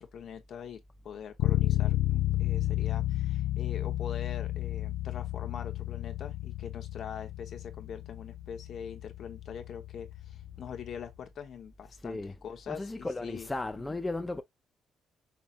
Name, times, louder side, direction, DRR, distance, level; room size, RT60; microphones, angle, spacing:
voice 1, 0.0-13.5 13.9-14.0, left 7 dB, 65° left, 1.0 m, -43 dB
Bass guitar, 1.4-11.1, left 15 dB, 85° left, 0.3 m, -32 dB
voice 2, 12.0-12.4 12.7-14.4, left 2 dB, 15° left, 0.6 m, -35 dB
5.6 x 2.8 x 2.4 m
cardioid pair, 90°, 0 cm